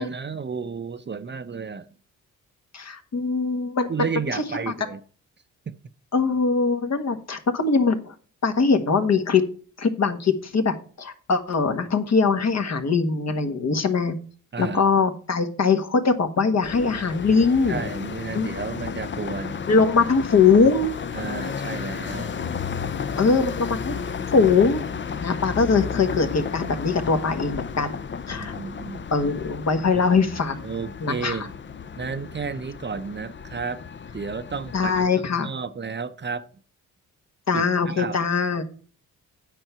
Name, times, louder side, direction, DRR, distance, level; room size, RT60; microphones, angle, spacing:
voice 1, 0.0-1.9 3.9-5.0 5.7-5.8 14.5-14.8 17.7-19.6 21.1-22.4 28.4-29.1 30.6-31.5 31.9-33.8 34.1-36.5 37.5-38.2, right 5 dB, 35° right, 0.8 m, -32 dB
voice 2, 2.7-3.9 4.3-4.7 6.1-8.1 8.4-9.4 9.8-14.1 14.6-17.8 18.3-18.5 19.7-20.9 23.2-23.9 24.3-24.8 25.2-28.0 28.3-28.5 29.1-30.6 31.0-31.5 34.7-35.5 37.5-38.6, left 4 dB, 50° left, 1.5 m, -21 dB
sound 1, 16.6-35.1, left 6 dB, 35° left, 0.7 m, -33 dB
9.3 x 4.6 x 6.8 m
cardioid pair, 65°, 33 cm